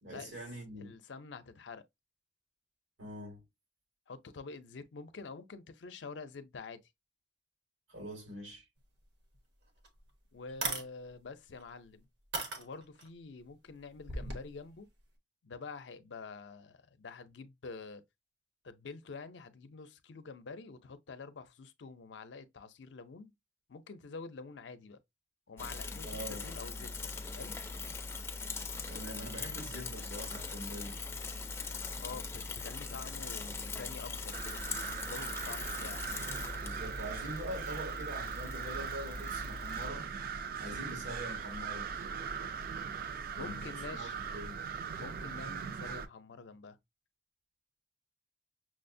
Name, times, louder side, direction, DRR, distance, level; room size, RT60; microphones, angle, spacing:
voice 1, 0.0-0.9 3.0-3.4 7.9-8.6 26.0-26.5 28.9-31.0 36.6-40.1 40.6-41.9 43.3-44.6, equal, 90° right, 2.0 m, -44 dB
voice 2, 0.8-1.8 4.1-6.8 10.3-12.1 12.6-14.9 15.4-18.0 18.6-23.3 23.7-25.0 25.5-27.6 32.0-36.1 43.3-44.2 44.9-46.8, left 4 dB, 70° left, 0.5 m, -47 dB
sound 1, 9.3-9.4 9.8-9.9 10.5-10.9 11.6-11.7 12.3-13.1 14.0-14.4, right 3 dB, 70° right, 1.0 m, -36 dB
Bicycle / Mechanisms, 25.6-39.9, left 4 dB, 15° left, 0.4 m, -41 dB
sound 2, 34.3-46.1, right 6 dB, 50° right, 0.4 m, -40 dB
6.1 x 2.0 x 2.6 m
head